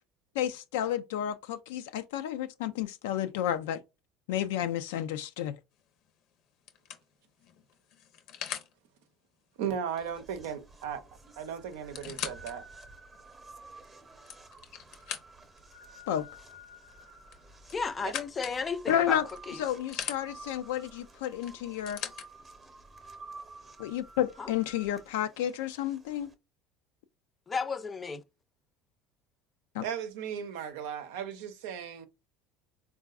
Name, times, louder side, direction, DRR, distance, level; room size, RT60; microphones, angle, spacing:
voice 1, 0.4-3.8 4.3-5.5 16.1-16.3 18.9-19.3 19.6-22.0 23.8-26.3 29.8-29.9, left 11 dB, 85° left, 0.3 m, -31 dB
sound 1, 5.8-6.1 6.7-8.7 10.8-10.9 11.1-11.2 11.7-12.5 13.1-13.2 14.0-15.6 17.3-18.6 19.3-20.2 21.4-22.3 23.2-23.3, left 9 dB, 70° left, 0.7 m, -40 dB
voice 2, 9.6-11.0 11.4-12.6 29.8-32.1, right 8 dB, 85° right, 0.6 m, -36 dB
sound 2, 10.0-26.3, right 2 dB, 25° right, 0.8 m, -52 dB
voice 3, 17.7-19.2 19.5-19.6 24.4-24.5 27.5-28.2, left 5 dB, 25° left, 0.5 m, -33 dB
3.8 x 2.4 x 2.3 m
supercardioid pair, 95°, 0 cm